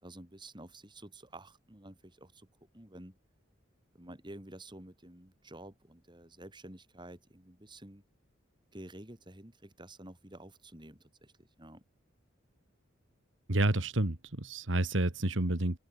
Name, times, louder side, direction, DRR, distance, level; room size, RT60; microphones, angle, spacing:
voice 1, 0.0-3.2 3.9-8.0 8.7-11.8, right 1 dB, 25° right, 4.0 m, -50 dB
voice 2, 13.5-15.8, right 1 dB, 70° right, 2.0 m, -29 dB
open air
head